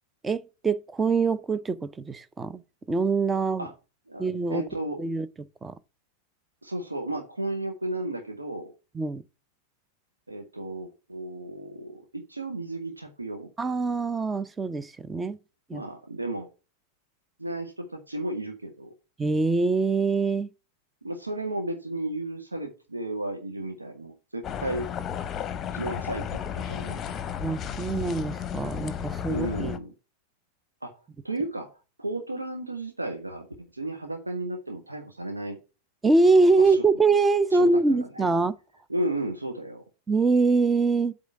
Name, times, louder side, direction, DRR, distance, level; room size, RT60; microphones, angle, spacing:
voice 1, 0.2-2.6 2.9-3.7 4.2-4.6 5.0-5.3 5.6-5.7 8.9-9.2 13.6-15.4 15.7-15.8 19.2-20.5 27.4-29.7 36.0-38.6 40.1-41.1, right 3 dB, 15° right, 0.6 m, -24 dB
voice 2, 4.5-5.0 6.6-8.7 10.3-13.5 15.7-16.5 17.4-18.9 21.0-24.9 25.7-27.1 29.3-29.9 30.8-31.0 31.2-31.7 32.0-33.5 33.7-35.6 36.6-36.8 37.5-38.3 38.9-39.8, right 1 dB, 80° right, 1.3 m, -33 dB
sound 1, 24.4-29.8, left 8 dB, 25° left, 0.8 m, -33 dB
8.1 x 3.8 x 6.7 m
figure-of-eight pair, 90°, 0 cm